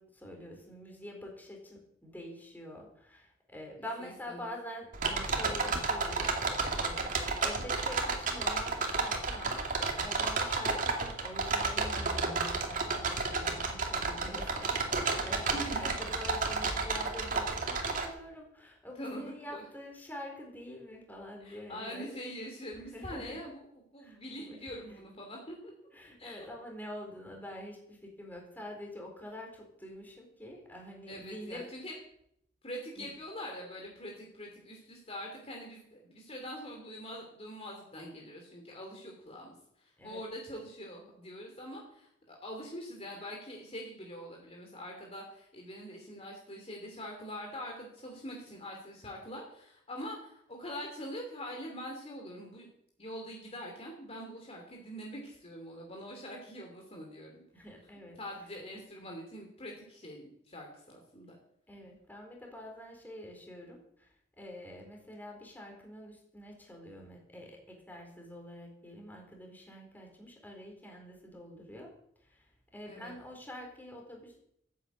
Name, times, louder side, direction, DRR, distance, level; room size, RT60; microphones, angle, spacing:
voice 1, 0.0-22.2 22.9-23.4 24.0-25.0 25.9-31.7 33.0-33.1 40.0-40.2 57.5-58.2 61.7-71.9 72.2-74.4, left 1 dB, 10° left, 1 dB, 4.1 m, -46 dB
voice 2, 4.0-4.5 15.5-15.8 19.0-19.6 21.4-23.7 23.9-25.7 26.2-26.5 31.1-31.9 32.6-52.7 53.0-57.4 58.2-61.4 72.9-73.1, equal, 30° left, 1 dB, 2.8 m, -44 dB
sound 1, 4.9-18.1, right 4 dB, 45° right, 2.4 m, -32 dB
14.0 x 9.4 x 8.1 m, 0.73 s
head